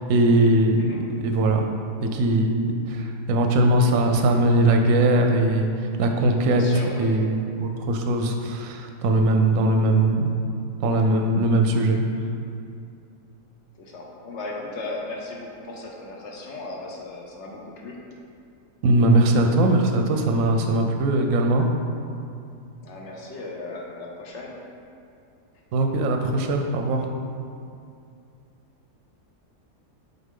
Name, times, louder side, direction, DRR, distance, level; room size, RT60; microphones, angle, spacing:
voice 1, 0.0-1.7 2.0-5.7 6.0-6.6 7.0-10.3 10.8-12.0 18.8-21.7 25.7-27.1, right 1 dB, 65° right, 3 dB, 0.9 m, -20 dB
voice 2, 6.4-7.2 10.9-11.0 13.8-18.0 22.8-24.5, left 2 dB, 55° left, -1 dB, 0.9 m, -36 dB
7.0 x 4.2 x 3.7 m, 2.5 s
omnidirectional pair, 1.7 m